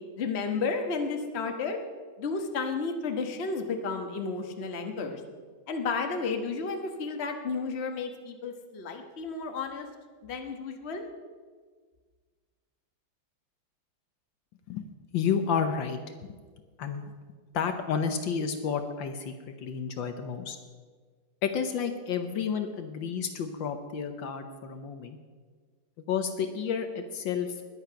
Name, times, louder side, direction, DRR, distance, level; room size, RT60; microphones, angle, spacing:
voice 1, 0.1-1.8 2.2-5.2 5.7-9.9 10.2-11.0, left 4 dB, 35° left, 4 dB, 1.3 m, -32 dB
voice 2, 15.1-16.0 16.8-17.1 17.5-19.3 19.6-20.6 21.4-25.2 26.1-27.6, left 6 dB, 70° left, 7 dB, 1.5 m, -30 dB
20.5 x 8.0 x 5.8 m, 1.5 s
omnidirectional pair, 2.2 m